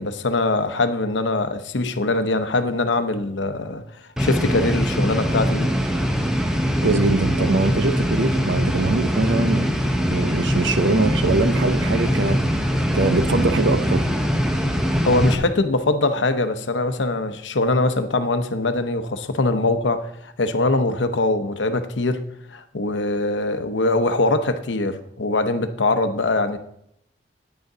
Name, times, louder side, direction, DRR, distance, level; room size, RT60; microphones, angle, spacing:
voice 1, 0.0-3.8 4.2-5.7 15.0-22.2 22.5-26.6, left 2 dB, 85° left, 0.8 m, -22 dB
sound 1, 4.2-15.3, equal, 5° right, 0.8 m, -22 dB
voice 2, 6.8-9.7 10.1-12.6 12.9-14.1, right 3 dB, 90° right, 0.7 m, -22 dB
9.5 x 8.0 x 3.8 m
head